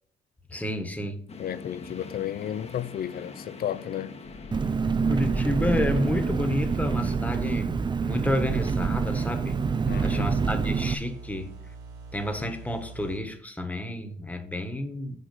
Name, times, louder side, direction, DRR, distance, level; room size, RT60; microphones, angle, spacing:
voice 1, 0.5-1.3 5.0-9.6 10.0-11.6 12.1-15.2, left 1 dB, 5° left, 1.3 m, -30 dB
sound 1, 1.3-7.2, left 2 dB, 30° left, 1.0 m, -40 dB
voice 2, 1.4-4.2 9.9-10.3, left 10 dB, 50° left, 0.5 m, -33 dB
Engine, 4.5-10.9, right 5 dB, 25° right, 0.4 m, -26 dB
sound 2, 8.2-13.2, right 4 dB, 90° right, 1.8 m, -44 dB
6.7 x 4.6 x 6.3 m
cardioid pair, 90°, 20 cm